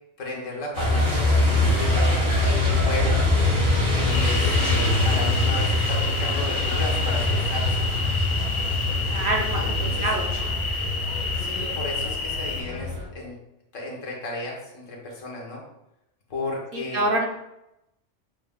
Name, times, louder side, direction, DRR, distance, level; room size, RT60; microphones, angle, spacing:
voice 1, 0.2-2.2 2.6-3.2 3.9-7.9 9.4-10.0 11.3-13.3 13.7-15.6 16.3-17.0, left 1 dB, 85° left, -1 dB, 1.5 m, -34 dB
Truck, 0.7-13.0, left 2 dB, 90° right, 2.3 m, -23 dB
sound 1, 4.1-12.6, left 5 dB, 60° left, 0.5 m, -30 dB
voice 2, 9.0-10.6 16.7-17.3, right 2 dB, 55° right, 0 dB, 0.8 m, -27 dB
6.4 x 2.3 x 3.5 m, 0.86 s
omnidirectional pair, 1.3 m